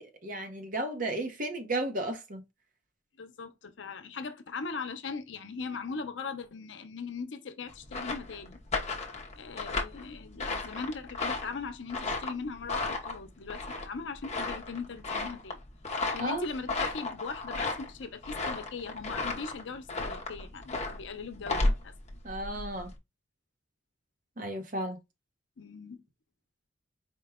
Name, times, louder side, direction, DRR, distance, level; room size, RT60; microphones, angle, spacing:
voice 1, 0.0-2.4 16.2-16.4 22.2-22.9 24.4-25.0, right 1 dB, 45° right, 0.8 m, -34 dB
voice 2, 3.2-8.6 9.4-15.6 15.9-21.9 25.6-26.0, left 4 dB, 75° left, 0.6 m, -39 dB
sound 1, 7.7-23.0, left 3 dB, 35° left, 0.7 m, -34 dB
4.4 x 2.2 x 3.5 m
head